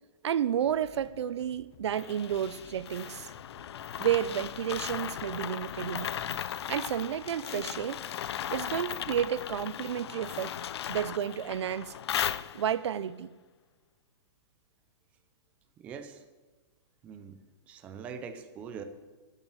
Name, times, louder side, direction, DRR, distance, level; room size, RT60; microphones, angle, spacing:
voice 1, 0.2-3.3 4.0-6.1 6.7-8.0 8.5-10.5 10.9-11.9 12.5-13.3, right 9 dB, 80° right, 0.5 m, -31 dB
sound 1, 0.6-7.7, left 4 dB, 20° left, 1.0 m, -57 dB
sound 2, 1.9-12.9, left 10 dB, 70° left, 0.5 m, -37 dB
voice 2, 15.8-16.2 17.0-18.8, right 6 dB, 10° right, 0.4 m, -43 dB
11.0 x 7.2 x 7.4 m
hypercardioid pair, 175°, 14 cm